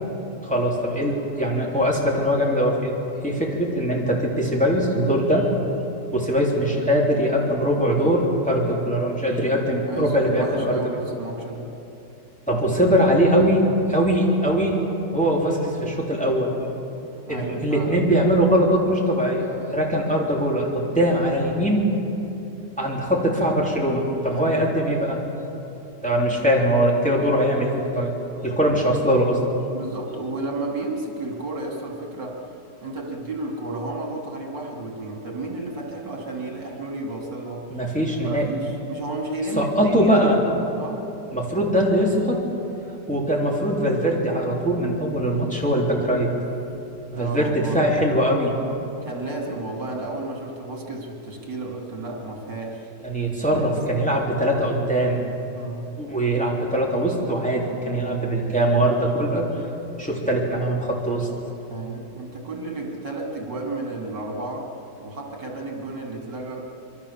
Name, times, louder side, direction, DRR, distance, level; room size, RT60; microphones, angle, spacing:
voice 1, 0.4-3.0 3.2-5.5 6.1-10.8 12.5-14.8 15.1-16.5 17.3-21.9 22.8-25.2 26.0-28.1 28.4-29.4 37.7-38.5 39.5-40.4 41.3-42.5 43.1-46.3 47.1-48.5 53.0-55.3 56.0-59.7 60.0-61.3, equal, 5° left, -3 dB, 3.5 m, -21 dB
voice 2, 9.9-11.7 17.3-17.9 24.3-24.7 29.7-32.5 32.8-37.8 38.2-41.1 47.1-47.8 49.0-52.9 53.4-53.8 55.6-55.9 61.7-64.7 65.0-66.6, right 2 dB, 75° right, 0 dB, 3.6 m, -32 dB
26.0 x 23.0 x 7.3 m, 2.9 s
omnidirectional pair, 1.9 m